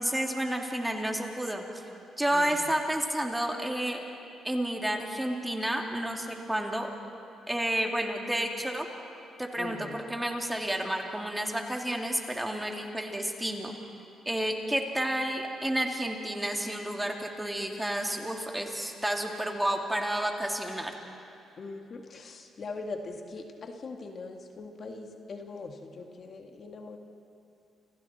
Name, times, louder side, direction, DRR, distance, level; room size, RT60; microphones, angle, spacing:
voice 1, 0.0-1.8 2.2-4.0 4.4-6.9 7.5-8.9 9.4-13.7 14.3-20.9, right 1 dB, 5° right, 1 dB, 2.7 m, -31 dB
voice 2, 2.3-2.6 9.6-10.0 21.6-27.0, left 3 dB, 50° left, 3 dB, 2.0 m, -41 dB
30.0 x 27.5 x 4.4 m, 2.7 s
cardioid pair, 90°, 0 cm